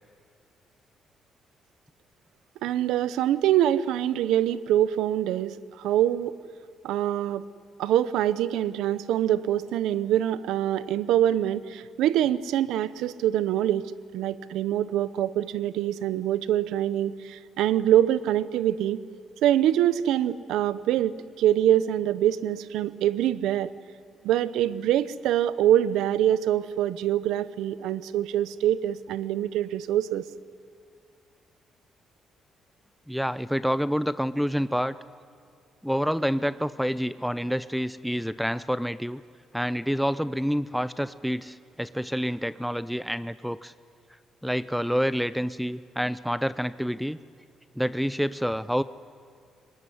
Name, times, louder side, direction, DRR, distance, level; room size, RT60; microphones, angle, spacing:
voice 1, 2.6-6.4 6.8-7.5 7.8-19.0 19.4-23.7 24.2-30.3, right 11 dB, 90° right, 16 dB, 0.7 m, -24 dB
voice 2, 33.1-34.9 35.8-39.2 39.5-43.7 44.4-47.2 47.8-48.8, equal, ahead, 15 dB, 0.5 m, -28 dB
24.0 x 19.0 x 9.8 m, 2.3 s
cardioid pair, 90°, 0 cm